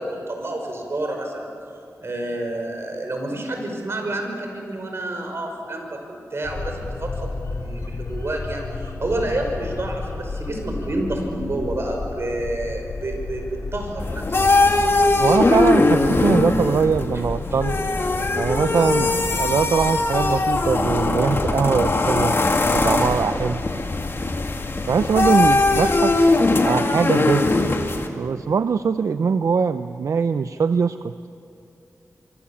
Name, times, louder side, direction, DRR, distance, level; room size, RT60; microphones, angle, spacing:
voice 1, 0.0-1.5 2.0-14.5, right 1 dB, 50° right, 3 dB, 5.3 m, -29 dB
sound 1, 6.4-26.2, left 3 dB, 70° left, 2.9 m, -33 dB
sound 2, 14.0-28.1, left 2 dB, 45° left, 2.1 m, -20 dB
voice 2, 15.2-17.8 18.4-22.4 22.7-23.6 24.9-26.2 26.6-27.5 28.1-31.1, right 6 dB, 75° right, 11 dB, 0.6 m, -22 dB
25.0 x 24.5 x 7.2 m, 2.7 s
wide cardioid pair, 80°, 6 cm